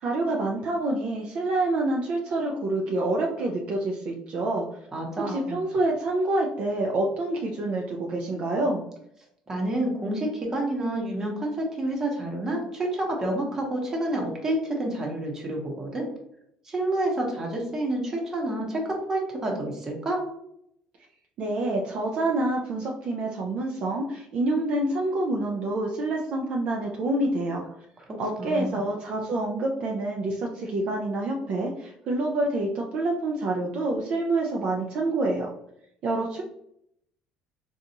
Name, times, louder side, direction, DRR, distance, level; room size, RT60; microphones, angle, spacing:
voice 1, 0.0-4.6 5.2-8.8 21.4-27.7 28.2-35.5 36.0-36.4, right 2 dB, 50° right, 0 dB, 0.5 m, -27 dB
voice 2, 4.9-5.6 9.5-16.0 16.6-20.2 28.4-28.8, right 1 dB, 25° right, 0 dB, 1.0 m, -29 dB
3.9 x 2.4 x 2.8 m, 0.75 s
cardioid pair, 130°, 2 cm